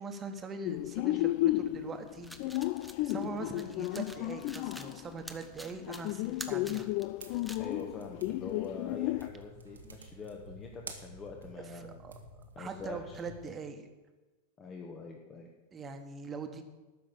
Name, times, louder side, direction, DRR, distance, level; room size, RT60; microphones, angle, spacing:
voice 1, 0.0-2.7 3.0-6.9 11.6-13.9 15.7-16.6, right 4 dB, 20° right, 6 dB, 1.4 m, -42 dB
sound 1, 0.6-5.3 5.8-9.3, left 17 dB, 45° left, 0.4 m, -33 dB
sound 2, 2.1-7.7, equal, ahead, 1.0 m, -48 dB
sound 3, 7.2-13.5, right 1 dB, 75° right, 1.4 m, -50 dB
voice 2, 7.6-12.0 12.5-13.2 14.6-15.5, left 4 dB, 25° left, 2 dB, 1.3 m, -44 dB
12.5 x 5.8 x 8.7 m, 1.2 s
figure-of-eight pair, 90°, 0 cm